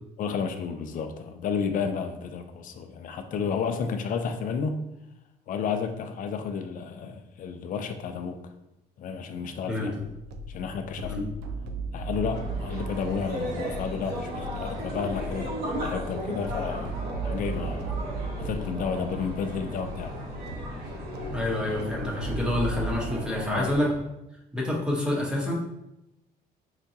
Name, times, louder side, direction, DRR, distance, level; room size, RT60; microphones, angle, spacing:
voice 1, 0.2-4.8 5.5-8.4 9.0-9.9 10.5-11.3 11.9-17.9 18.4-20.2 23.5-23.7, left 6 dB, 50° left, 7 dB, 0.4 m, -32 dB
sound 1, 10.3-23.0, right 2 dB, 85° right, 0.4 m, -37 dB
mixed voices, 12.2-24.0, right 1 dB, 65° right, 1.0 m, -36 dB
voice 2, 21.3-23.9 24.5-25.5, left 1 dB, 5° right, -3 dB, 0.9 m, -28 dB
4.8 x 2.2 x 2.7 m, 0.90 s
cardioid pair, 110°, 17 cm